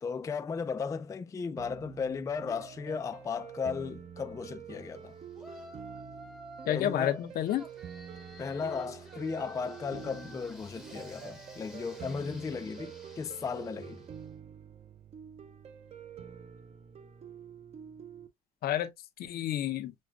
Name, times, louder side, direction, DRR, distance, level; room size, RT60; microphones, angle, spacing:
voice 1, 0.0-5.1 6.7-7.2 8.4-14.0, left 5 dB, 20° left, 0.3 m, -35 dB
sound 1, 1.6-18.3, right 8 dB, 40° right, 0.7 m, -47 dB
Yell, 5.3-6.9 7.4-14.2, equal, 5° right, 0.8 m, -51 dB
voice 2, 6.7-7.7 18.6-18.9 19.2-19.9, left 11 dB, 65° left, 0.7 m, -30 dB
6.4 x 2.3 x 2.3 m
cardioid pair, 110°, 17 cm